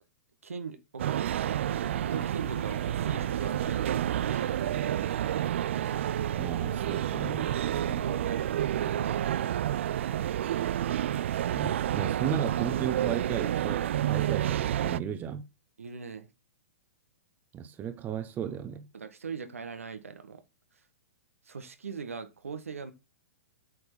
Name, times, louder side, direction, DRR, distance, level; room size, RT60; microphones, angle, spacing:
voice 1, 0.4-1.4 2.1-5.3 7.6-9.5 15.8-16.3 18.9-20.4 21.4-22.9, right 5 dB, 75° right, 1.5 m, -40 dB
sound 1, 1.0-15.0, right 11 dB, 60° right, 0.4 m, -29 dB
sound 2, 1.7-9.0, left 6 dB, 60° left, 2.9 m, -52 dB
voice 2, 6.4-7.6 11.5-15.4 17.5-18.9, right 8 dB, 25° right, 1.0 m, -35 dB
8.4 x 6.7 x 4.6 m
figure-of-eight pair, 110°, 7 cm